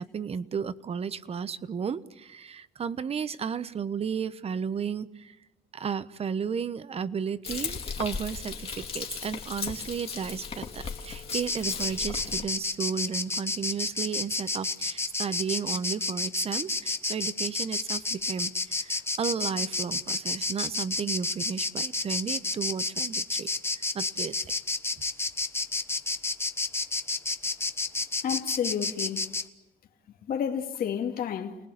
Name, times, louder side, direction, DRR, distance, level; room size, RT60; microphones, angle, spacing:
voice 1, 0.0-5.4 5.7-24.4, right 6 dB, 35° right, 1.1 m, -33 dB
Frying (food), 7.4-12.4, left 5 dB, 35° left, 2.8 m, -36 dB
Insect, 11.3-29.5, left 3 dB, 15° left, 1.2 m, -30 dB
voice 2, 28.2-29.3 30.3-31.6, left 8 dB, 60° left, 2.6 m, -30 dB
29.5 x 19.5 x 8.3 m
cardioid pair, 110°, 17 cm